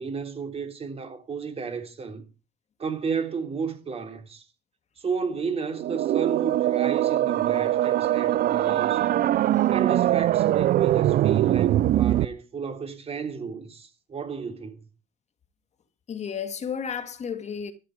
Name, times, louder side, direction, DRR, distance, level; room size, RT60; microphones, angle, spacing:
voice 1, 0.0-2.2 2.8-4.5 5.0-9.1 9.7-14.8, right 5 dB, 35° right, 3.5 m, -33 dB
sound 1, 5.8-12.2, right 13 dB, 60° right, 0.6 m, -22 dB
voice 2, 16.1-17.7, left 7 dB, 40° left, 2.1 m, -32 dB
13.5 x 10.5 x 5.0 m
cardioid pair, 110°, 17 cm